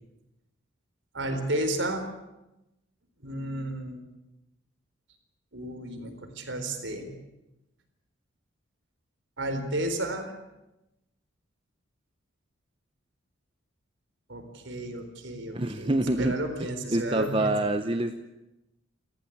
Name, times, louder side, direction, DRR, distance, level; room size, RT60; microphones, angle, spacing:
voice 1, 1.1-2.0 3.2-4.0 5.5-7.1 9.4-10.3 14.3-17.5, right 1 dB, 60° right, 6 dB, 4.2 m, -32 dB
voice 2, 15.5-16.3 16.9-18.2, right 2 dB, 25° right, 7 dB, 0.8 m, -26 dB
29.5 x 14.5 x 8.7 m, 0.95 s
head